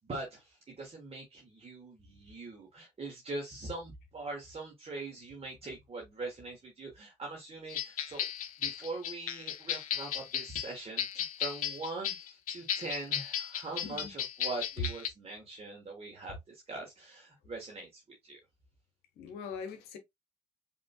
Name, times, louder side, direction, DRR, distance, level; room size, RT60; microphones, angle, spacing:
voice 1, 0.0-8.3 8.6-18.4, right 3 dB, 35° right, 1.4 m, -42 dB
sound 1, 7.7-15.1, left 10 dB, 90° left, 0.4 m, -35 dB
voice 2, 13.8-14.1 19.2-20.0, left 6 dB, 65° left, 0.9 m, -42 dB
5.1 x 3.0 x 2.4 m
hypercardioid pair, 50°, 18 cm